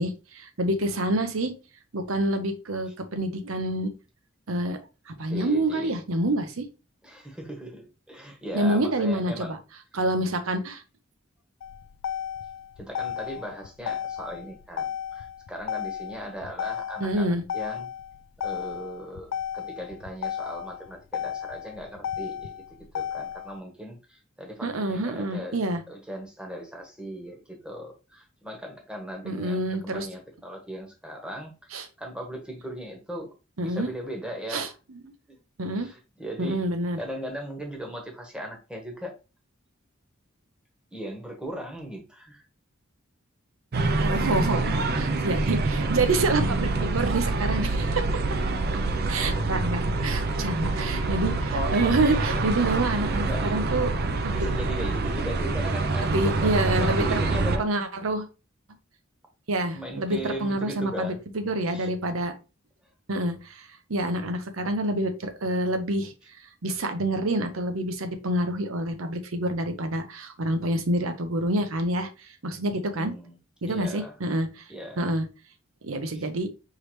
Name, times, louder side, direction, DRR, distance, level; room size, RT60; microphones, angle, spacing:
voice 1, 0.0-1.5 1.9-3.9 4.5-4.8 5.1-6.7 8.5-9.6 9.9-10.8 17.0-17.4 24.6-25.8 29.2-30.1 31.7-31.9 33.6-33.9 34.5-35.0 35.6-35.9 36.4-37.0 44.0-48.1 49.1-53.9 54.2-54.4 56.0-57.2 57.6-58.3 59.5-62.3 63.1-66.1 66.6-73.1 73.6-74.7 75.0-75.3 75.8-76.5, right 1 dB, 80° right, 8 dB, 0.8 m, -27 dB
voice 2, 5.2-6.0 7.0-9.5 12.8-17.9 18.4-31.5 32.0-33.3 33.6-34.7 35.3-35.4 35.8-36.6 37.0-39.1 40.9-42.4 53.2-53.6 54.3-57.7 59.7-61.2 61.7-61.9 72.7-73.4 73.7-74.1 74.7-75.1 76.1-76.2, equal, 5° right, 1 dB, 1.1 m, -38 dB
Motor vehicle (road), 11.6-23.6, left 9 dB, 70° left, 0.3 m, -34 dB
sound 1, 43.7-57.6, right 3 dB, 50° right, 0.5 m, -26 dB
4.7 x 3.3 x 3.1 m, 0.30 s
head